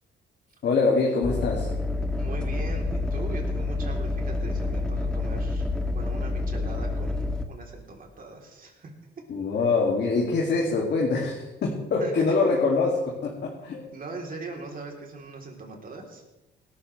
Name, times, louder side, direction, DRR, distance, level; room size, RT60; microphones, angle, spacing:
voice 1, 0.6-1.7 9.3-13.8, left 4 dB, 60° left, -2 dB, 2.5 m, -24 dB
sound 1, 1.2-7.5, left 2 dB, 5° left, 1.3 m, -28 dB
voice 2, 2.2-8.9 12.0-12.3 13.9-16.2, right 3 dB, 45° right, 1 dB, 3.5 m, -40 dB
18.5 x 13.0 x 3.3 m, 1.0 s
cardioid pair, 90°, 20 cm